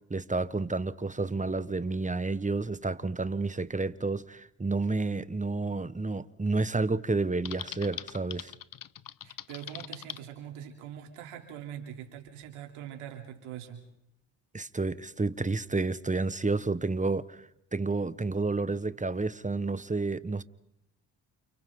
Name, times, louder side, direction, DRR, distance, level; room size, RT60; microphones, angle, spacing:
voice 1, 0.1-8.5 14.5-17.4 17.7-20.4, right 3 dB, 15° right, 1.2 m, -30 dB
Typing, 7.4-10.2, left 9 dB, 45° left, 0.9 m, -42 dB
voice 2, 9.2-13.8, right 10 dB, 85° right, 3.4 m, -43 dB
29.5 x 29.0 x 3.8 m
hypercardioid pair, 45°, 48 cm